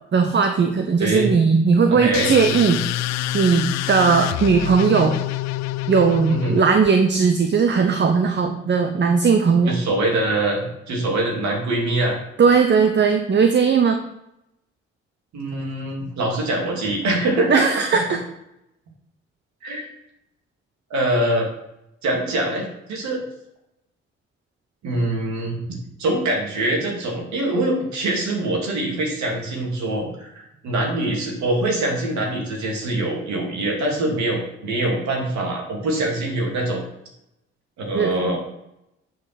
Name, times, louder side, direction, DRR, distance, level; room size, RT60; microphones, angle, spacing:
voice 1, 0.1-2.8 3.3-5.2 5.9-9.8 12.4-14.0 17.5-18.2 37.9-38.1, right 5 dB, 35° right, 6 dB, 1.0 m, -18 dB
voice 2, 1.9-2.3 6.3-6.6 9.6-12.2 15.3-17.6 17.9-18.0 19.6-19.8 20.9-21.5 22.0-23.2 24.8-36.8 37.8-38.4, right 1 dB, 65° right, 0 dB, 2.7 m, -24 dB
sound 1, 2.1-6.9, left 16 dB, 60° left, 0.4 m, -27 dB
9.6 x 5.4 x 4.2 m, 0.83 s
hypercardioid pair, 45°, 30 cm